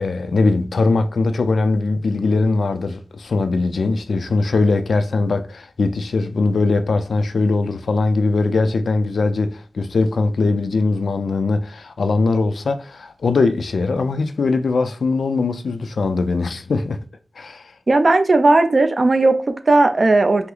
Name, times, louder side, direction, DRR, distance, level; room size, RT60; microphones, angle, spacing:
voice 1, 0.0-17.0 17.4-17.7, left 3 dB, 85° left, 0.4 m, -20 dB
voice 2, 17.9-20.5, right 2 dB, 45° right, 0.5 m, -16 dB
5.6 x 2.0 x 3.8 m
wide cardioid pair, 100°, 0 cm